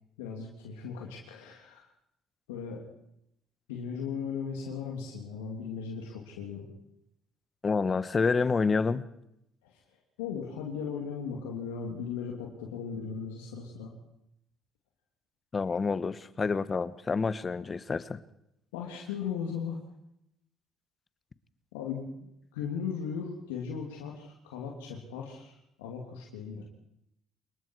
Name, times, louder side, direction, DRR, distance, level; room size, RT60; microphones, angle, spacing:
voice 1, 0.2-1.9 2.5-2.8 3.7-6.7 9.6-9.8 10.2-13.9 18.7-19.8 21.7-22.1 22.5-26.7, left 6 dB, 90° left, 3.1 m, -37 dB
voice 2, 7.6-9.0 15.5-18.2, left 4 dB, 35° left, 1.3 m, -28 dB
27.0 x 21.5 x 4.8 m
hypercardioid pair, 60°, 0 cm